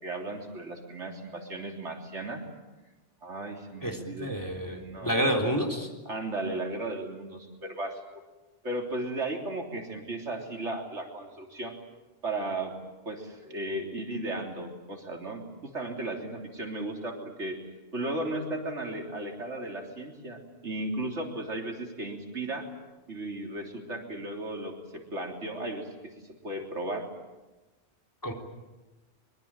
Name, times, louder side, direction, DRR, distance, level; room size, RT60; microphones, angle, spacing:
voice 1, 0.0-2.4 3.2-5.4 6.1-8.0 8.6-11.8 12.2-12.7 13.1-17.6 17.9-22.7 23.1-27.1, right 2 dB, 90° right, 2 dB, 3.8 m, -35 dB
voice 2, 3.8-5.9 28.2-28.3, equal, 15° left, 3 dB, 3.7 m, -29 dB
25.0 x 22.5 x 8.9 m, 1.1 s
omnidirectional pair, 1.2 m